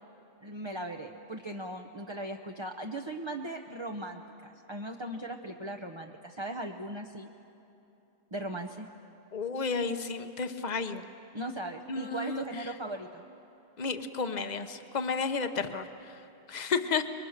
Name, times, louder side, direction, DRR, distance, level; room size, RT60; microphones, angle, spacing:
voice 1, 0.4-7.3 8.3-8.9 11.3-13.2, right 1 dB, 25° right, 2 dB, 0.9 m, -38 dB
voice 2, 9.3-11.0 11.9-12.4 13.8-16.2 16.5-17.1, left 5 dB, 40° left, 8 dB, 1.0 m, -32 dB
27.5 x 22.5 x 6.6 m, 2.9 s
omnidirectional pair, 1.2 m